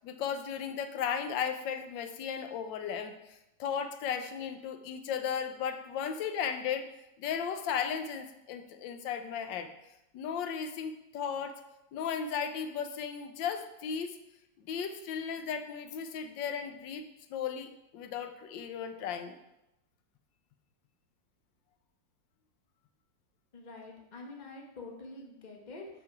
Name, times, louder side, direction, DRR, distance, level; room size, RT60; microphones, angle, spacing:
voice 1, 0.0-6.9 7.2-9.7 10.1-11.5 11.9-14.2 14.7-17.0 17.3-17.7 17.9-19.4, left 7 dB, 90° left, 7 dB, 1.4 m, -35 dB
voice 2, 23.5-25.9, left 3 dB, 30° left, 1 dB, 1.1 m, -46 dB
6.8 x 5.7 x 4.7 m, 0.88 s
omnidirectional pair, 2.0 m